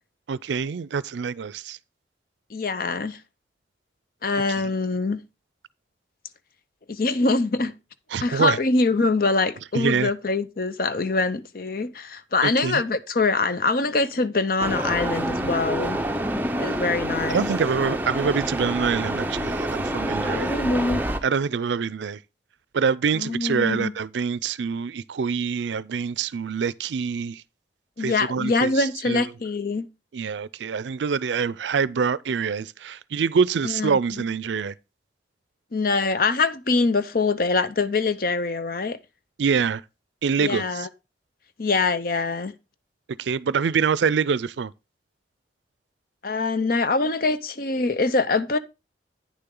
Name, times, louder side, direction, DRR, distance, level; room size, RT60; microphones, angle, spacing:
voice 1, 0.3-1.8 8.1-8.6 9.7-10.1 12.6-12.8 17.3-20.5 21.2-22.2 22.7-27.4 28.0-28.7 29.1-29.2 30.1-34.7 39.4-39.8 40.2-40.9 43.2-44.7, right 6 dB, 75° right, 0.4 m, -25 dB
voice 2, 2.5-3.2 4.2-5.2 6.9-7.7 8.2-16.0 16.6-17.5 20.2-21.0 23.1-23.9 28.0-29.9 33.6-34.2 35.7-39.0 40.4-40.9 41.6-42.5 46.2-48.6, left 3 dB, 50° left, 0.7 m, -24 dB
sound 1, 14.6-21.2, right 1 dB, 10° right, 0.6 m, -27 dB
9.5 x 6.8 x 3.7 m
head